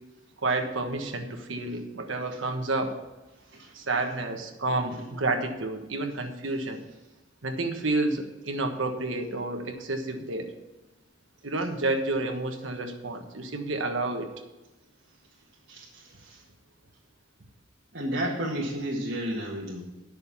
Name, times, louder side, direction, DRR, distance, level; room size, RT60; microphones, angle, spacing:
voice 1, 0.4-3.0 3.7-6.9 7.4-10.5 11.4-14.3, right 2 dB, 75° right, 5 dB, 1.4 m, -30 dB
voice 2, 3.4-3.7 15.7-16.4 17.9-19.8, right 1 dB, 55° right, -4 dB, 1.7 m, -32 dB
10.0 x 6.5 x 7.1 m, 1.1 s
head